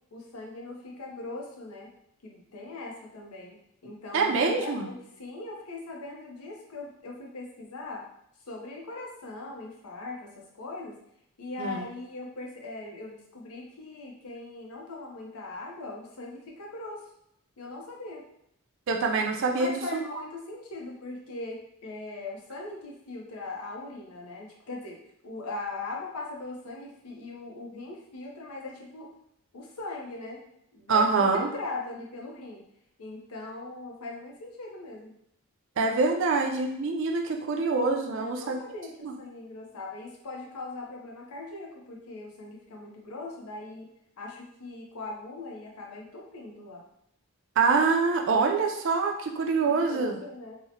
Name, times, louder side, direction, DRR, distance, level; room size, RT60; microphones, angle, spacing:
voice 1, 0.1-1.9 2.2-8.0 8.5-11.0 11.4-17.0 17.6-18.2 19.5-29.1 29.5-30.4 30.7-32.7 33.0-35.1 38.0-43.9 44.2-46.8 49.6-50.6, left 2 dB, 85° left, -1 dB, 0.6 m, -40 dB
voice 2, 4.1-4.9 11.6-11.8 18.9-19.8 30.9-31.5 35.8-38.6 39.0-39.1 47.6-50.1, right 4 dB, 55° right, 3 dB, 0.3 m, -25 dB
2.8 x 2.0 x 2.6 m, 0.74 s
head